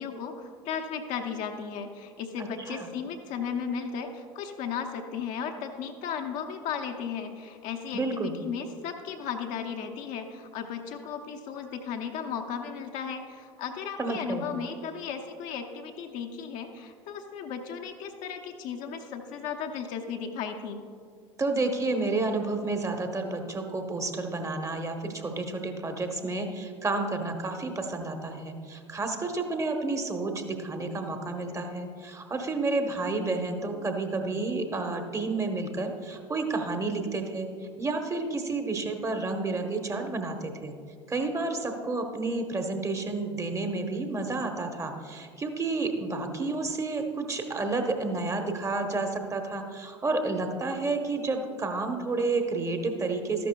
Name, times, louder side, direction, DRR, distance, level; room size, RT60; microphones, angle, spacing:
voice 1, 0.0-20.8, left 7 dB, 50° left, 4 dB, 0.8 m, -35 dB
voice 2, 2.4-2.9 7.9-8.4 14.0-14.5 21.4-37.5 37.8-40.7 41.1-53.5, right 3 dB, 20° right, 5 dB, 1.1 m, -30 dB
13.0 x 11.0 x 2.3 m, 2.2 s
figure-of-eight pair, 70°, 16 cm